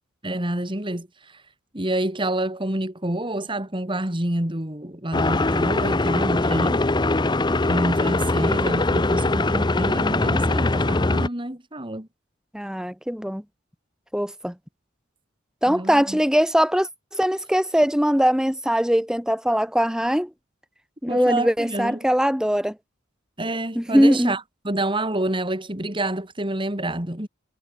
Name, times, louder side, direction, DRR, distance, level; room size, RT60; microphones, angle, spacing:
voice 1, 0.2-1.4 1.7-6.8 7.6-12.1 15.7-16.2 21.1-22.1 23.4-27.3, right 1 dB, 25° right, 2.9 m, -28 dB
sound 1, 5.1-11.3, left 2 dB, 20° left, 0.7 m, -22 dB
voice 2, 12.5-13.4 14.1-14.5 15.6-20.3 21.0-22.7 23.8-24.3, equal, 5° right, 2.7 m, -21 dB
head